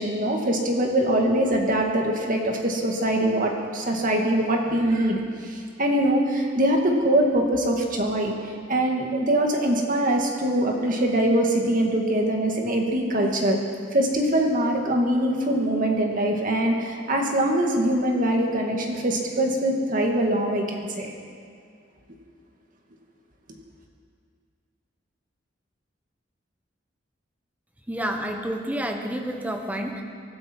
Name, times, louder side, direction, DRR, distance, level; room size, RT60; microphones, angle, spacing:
voice 1, 0.0-13.6 13.9-21.1, right 1 dB, 45° right, 1 dB, 2.1 m, -23 dB
voice 2, 27.9-30.0, right 1 dB, 10° right, 3 dB, 1.3 m, -29 dB
24.5 x 12.0 x 4.6 m, 2.2 s
head